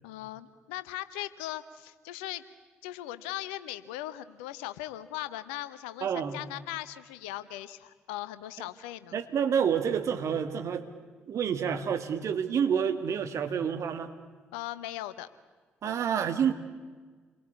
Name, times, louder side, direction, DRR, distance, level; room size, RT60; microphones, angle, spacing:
voice 1, 0.0-2.4 2.8-9.2 14.5-15.3, left 15 dB, 75° left, 15 dB, 0.9 m, -39 dB
voice 2, 6.0-6.4 9.1-10.9 11.3-14.1 15.8-16.5, right 7 dB, 55° right, 8 dB, 2.1 m, -28 dB
28.5 x 23.0 x 8.4 m, 1.4 s
figure-of-eight pair, 45°, 6 cm